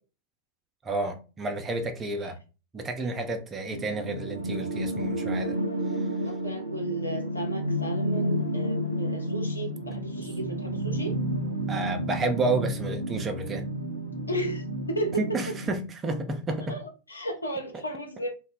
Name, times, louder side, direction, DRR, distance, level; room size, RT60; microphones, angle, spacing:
voice 1, 0.8-2.4 2.7-5.6 11.7-13.7 15.2-16.8, right 2 dB, 20° right, 0.5 m, -30 dB
sound 1, 3.7-15.7, right 1 dB, 85° right, 0.5 m, -31 dB
voice 2, 6.2-11.1 14.3-15.4 16.7-18.3, right 1 dB, 80° left, 0.6 m, -34 dB
2.1 x 2.1 x 3.6 m
figure-of-eight pair, 90°, 0 cm